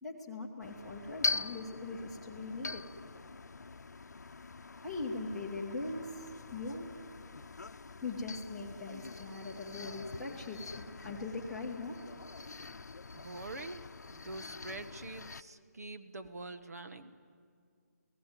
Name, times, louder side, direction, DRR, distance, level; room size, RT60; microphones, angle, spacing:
voice 1, 0.0-2.8 4.8-6.9 8.0-12.0, left 3 dB, ahead, -6 dB, 1.8 m, -41 dB
sound 1, 0.6-15.4, left 3 dB, 75° left, 0.8 m, -43 dB
voice 2, 13.1-13.8 14.1-17.1, right 2 dB, 65° right, 8 dB, 1.5 m, -45 dB
29.5 x 17.5 x 9.3 m, 2.2 s
hypercardioid pair, 175°, 9 cm